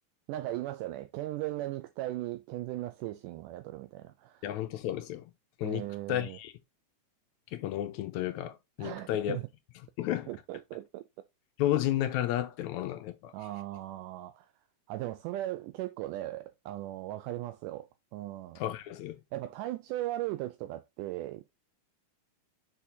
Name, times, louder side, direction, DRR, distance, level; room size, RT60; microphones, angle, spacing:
voice 1, 0.3-4.5 5.6-6.4 8.8-9.5 10.3-11.0 13.3-14.5 14.9-18.6 19.3-21.5, right 15 dB, 85° right, 2.1 m, -38 dB
voice 2, 4.4-5.3 5.6-6.5 7.5-9.4 10.0-10.3 11.6-13.3 18.6-19.2, left 13 dB, 80° left, 1.8 m, -32 dB
6.1 x 5.6 x 2.7 m
omnidirectional pair, 3.7 m